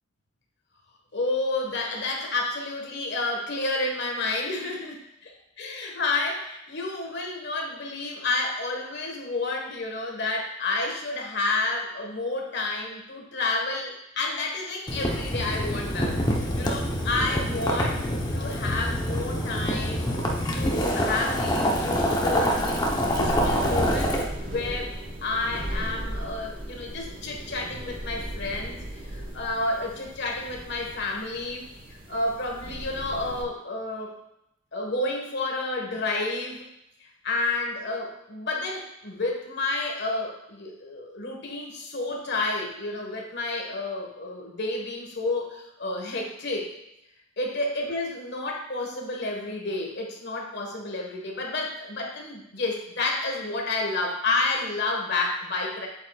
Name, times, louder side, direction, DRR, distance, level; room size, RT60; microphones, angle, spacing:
voice 1, 1.1-5.0 5.6-18.0 18.3-20.1 20.5-24.9 25.2-34.2 34.7-36.7 37.0-46.7 47.4-55.9, left 2 dB, 55° left, 1 dB, 1.5 m, -30 dB
Boiling, 14.9-24.2, equal, 20° left, 0.8 m, -26 dB
sound 1, 20.7-33.4, right 1 dB, 45° right, 1.4 m, -37 dB
8.3 x 7.8 x 2.4 m, 0.84 s
head